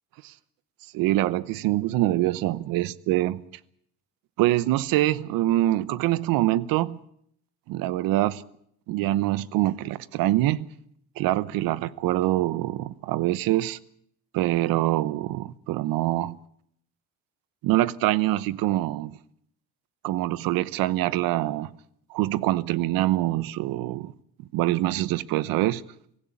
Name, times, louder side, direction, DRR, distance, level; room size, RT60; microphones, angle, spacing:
voice 1, 0.9-3.4 4.4-7.0 7.7-8.4 8.9-10.7 11.2-13.8 14.3-16.4 17.6-19.2 20.0-21.7 22.1-24.1 24.5-25.8, right 15 dB, 65° right, 0.9 m, -24 dB
24.0 x 15.5 x 8.6 m
cardioid pair, 180°, 37 cm